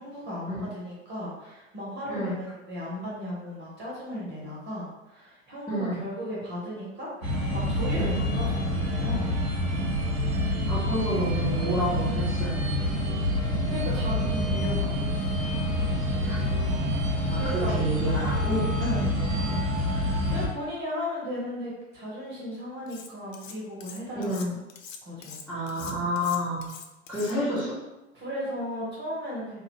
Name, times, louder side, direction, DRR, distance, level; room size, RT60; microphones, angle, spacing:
voice 1, 0.0-9.4 13.7-15.1 17.4-17.8 18.8-19.1 19.4-24.6 25.0-25.4 28.1-29.6, equal, 25° right, -6 dB, 1.2 m, -35 dB
voice 2, 5.7-6.0 7.9-8.2 10.6-13.0 16.2-16.4 17.3-18.7 24.1-24.5 25.5-26.7 27.1-27.8, right 1 dB, ahead, -14 dB, 1.2 m, -29 dB
sound 1, 7.2-20.5, left 1 dB, 90° right, 0.7 m, -27 dB
Cutlery silverware, 22.9-23.5 23.8-27.6, left 6 dB, 75° left, 0.5 m, -44 dB
2.8 x 2.4 x 3.1 m, 1.0 s
figure-of-eight pair, 80°, 39 cm